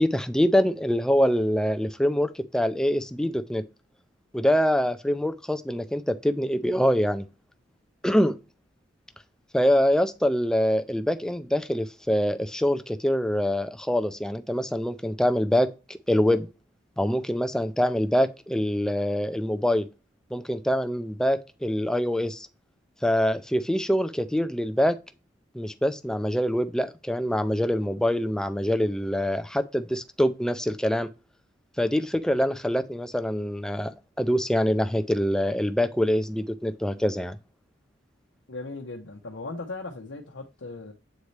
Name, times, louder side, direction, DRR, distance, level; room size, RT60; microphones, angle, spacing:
voice 1, 0.0-3.6 4.3-7.3 8.0-8.3 9.5-16.5 17.0-19.9 20.3-22.5 23.0-25.0 25.5-31.1 31.8-37.4, equal, 5° left, 0.5 m, -25 dB
voice 2, 38.5-40.9, left 3 dB, 90° left, 0.8 m, -37 dB
8.1 x 4.1 x 3.2 m
head